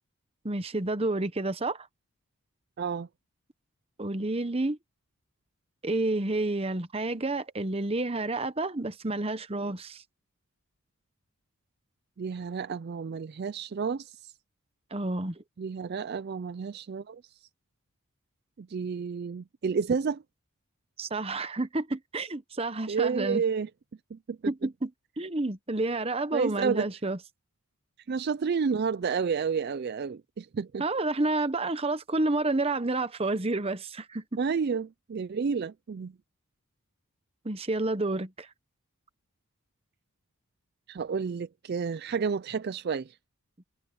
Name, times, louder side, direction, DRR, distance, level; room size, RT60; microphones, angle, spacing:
voice 1, 0.4-1.9 4.0-4.8 5.8-10.0 14.9-15.4 21.0-23.4 24.5-24.9 25.2-27.2 30.8-34.4 37.4-38.5, right 2 dB, 25° right, 1.0 m, -29 dB
voice 2, 2.8-3.1 12.2-14.3 15.6-17.5 18.6-20.2 22.9-23.7 24.1-24.5 26.3-26.9 28.1-30.8 34.4-36.2 40.9-43.2, right 5 dB, 45° right, 0.4 m, -30 dB
head